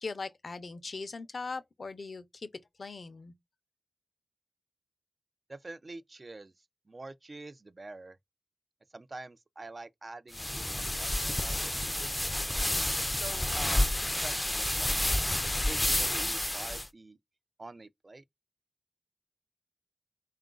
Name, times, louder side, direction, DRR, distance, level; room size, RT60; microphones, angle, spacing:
voice 1, 0.0-2.5 2.8-3.3, left 4 dB, 75° left, 0.5 m, -40 dB
voice 2, 5.5-6.5 6.9-8.2 8.9-12.1 13.0-13.9 14.2-15.1 15.5-17.2 17.6-18.2, right 2 dB, 50° right, 0.3 m, -46 dB
sound 1, 10.3-16.9, left 1 dB, 20° left, 0.4 m, -30 dB
3.8 x 2.4 x 3.7 m
wide cardioid pair, 65°, 0 cm